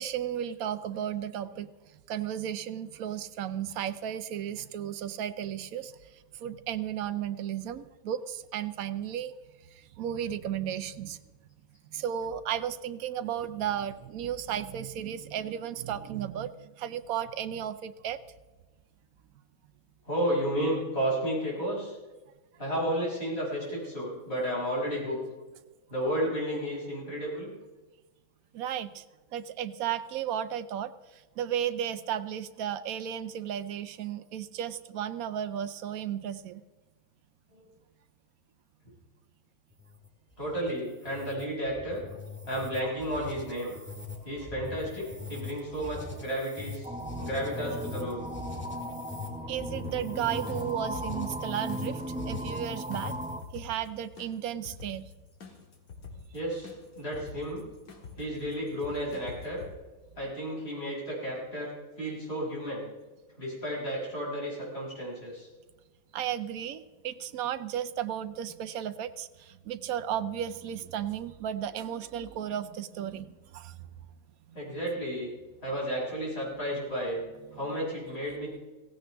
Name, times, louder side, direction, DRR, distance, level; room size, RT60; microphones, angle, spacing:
voice 1, 0.0-1.7 2.1-5.9 6.4-9.3 9.7-11.2 11.9-18.2 28.5-29.0 29.3-36.6 49.5-53.1 53.5-55.1 66.1-73.8 74.5-74.8, right 10 dB, 80° right, 11 dB, 1.1 m, -34 dB
voice 2, 20.1-22.0 22.6-25.2 25.9-27.5 37.5-37.7 40.4-42.0 42.5-43.7 44.2-46.9 47.2-48.2 56.3-57.6 58.2-59.6 60.2-61.7 62.0-62.8 63.4-65.5 74.5-75.3 75.6-77.2 77.5-78.6, equal, 45° left, -5 dB, 6.2 m, -32 dB
sound 1, 39.7-53.6, left 3 dB, 10° left, 1.8 m, -43 dB
sound 2, 46.8-53.4, right 1 dB, 10° right, 0.4 m, -37 dB
sound 3, 49.8-59.7, left 4 dB, 85° left, 2.2 m, -48 dB
16.5 x 16.0 x 3.4 m, 1.2 s
omnidirectional pair, 1.5 m